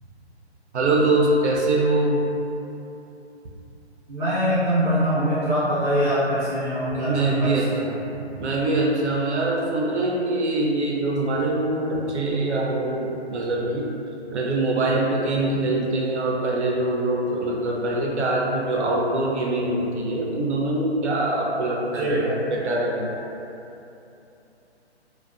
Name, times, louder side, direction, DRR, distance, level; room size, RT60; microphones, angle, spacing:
voice 1, 0.7-2.2 6.9-7.7 8.3-13.9 14.3-23.2, right 2 dB, 85° right, -2 dB, 0.6 m, -23 dB
voice 2, 4.1-7.8 21.9-22.2, equal, 10° right, -13 dB, 0.6 m, -23 dB
2.5 x 2.1 x 2.3 m, 2.8 s
hypercardioid pair, 155°, 33 cm